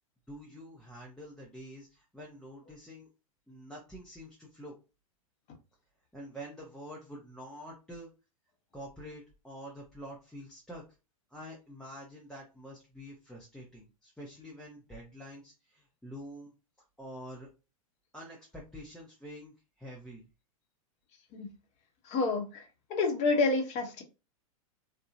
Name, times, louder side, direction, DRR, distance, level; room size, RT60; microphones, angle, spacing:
voice 1, 0.3-3.1 3.5-4.8 6.1-8.1 8.7-10.8 11.3-16.5 17.0-17.5 18.1-20.2, equal, 5° left, -3 dB, 0.7 m, -47 dB
voice 2, 22.1-22.6 22.9-24.0, left 3 dB, 40° left, 4 dB, 0.8 m, -28 dB
2.7 x 2.1 x 2.5 m, 0.29 s
hypercardioid pair, 105°, 19 cm